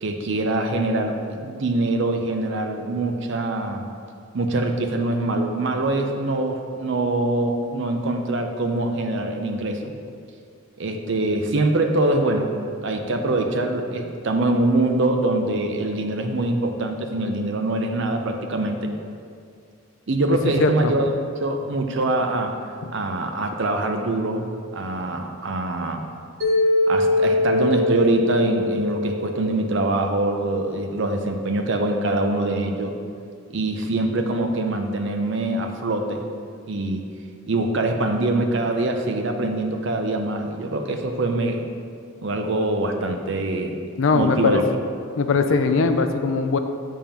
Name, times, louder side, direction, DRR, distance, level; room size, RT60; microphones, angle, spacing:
voice 1, 0.0-3.9 4.3-9.9 10.8-12.6 12.8-18.9 20.1-21.1 21.4-22.6 22.9-24.5 24.7-26.0 26.9-32.9 33.5-36.2 36.7-37.0 37.5-41.7 42.2-43.8 44.1-44.7, right 2 dB, 55° right, 4 dB, 0.6 m, -24 dB
voice 2, 20.6-20.9 44.0-44.6 45.2-46.6, left 4 dB, 60° left, 7 dB, 0.4 m, -20 dB
Mallet percussion, 26.4-30.6, left 2 dB, 75° right, 1.6 m, -23 dB
7.0 x 3.7 x 5.7 m, 2.3 s
head